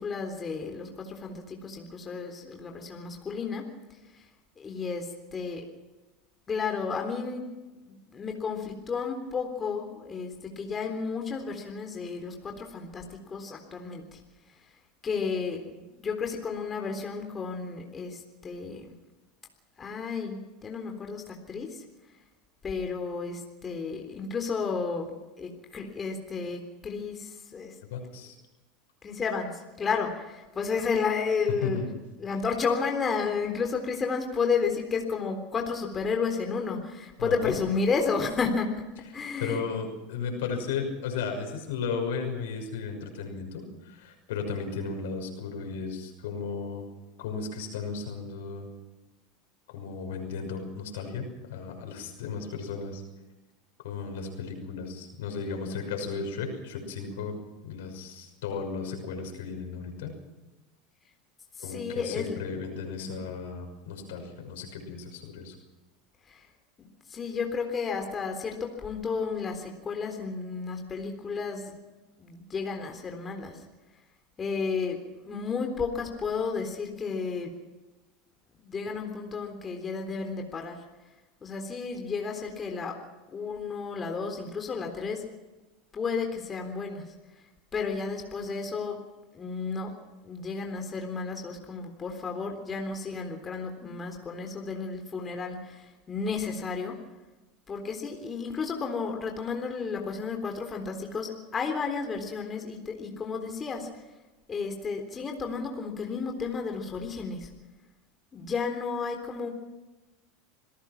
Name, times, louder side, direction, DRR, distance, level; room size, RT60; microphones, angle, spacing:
voice 1, 0.0-3.7 4.6-5.6 6.5-7.5 7.9-14.2 15.0-18.9 19.8-21.8 22.6-25.1 25.4-27.8 29.0-31.9 32.2-38.7 39.1-39.6 61.6-62.4 63.0-63.2 66.3-66.4 66.8-71.8 72.2-73.6 74.4-75.0 75.2-77.5 78.6-80.8 81.4-83.0 83.3-85.3 85.9-87.0 87.7-89.0 89.3-89.9 90.2-97.0 97.7-103.9 104.5-107.5 108.3-109.5, left 5 dB, 30° left, 3 dB, 3.7 m, -32 dB
voice 2, 27.9-28.3 31.6-31.9 37.2-37.5 39.4-46.9 47.2-48.7 49.7-53.0 53.8-57.4 57.6-60.1 61.6-65.5, left 5 dB, 75° left, 4 dB, 6.0 m, -35 dB
27.0 x 18.0 x 6.1 m, 1.1 s
hypercardioid pair, 90°, 0 cm